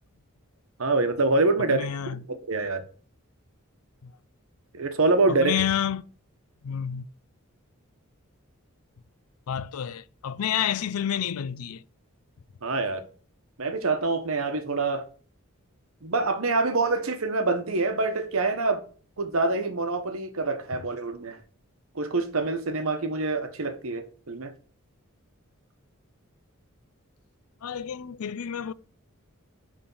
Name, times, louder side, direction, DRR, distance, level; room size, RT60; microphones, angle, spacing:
voice 1, 0.8-1.8 2.3-2.8 4.7-5.5 12.6-13.0 13.6-15.0 16.0-18.8 19.2-21.4 21.9-24.5, right 3 dB, 70° right, 1.0 m, -25 dB
voice 2, 1.7-2.2 4.0-4.1 5.3-6.0 6.6-7.1 9.5-11.8 27.6-28.7, left 9 dB, 90° left, 0.4 m, -29 dB
9.8 x 3.5 x 5.5 m
head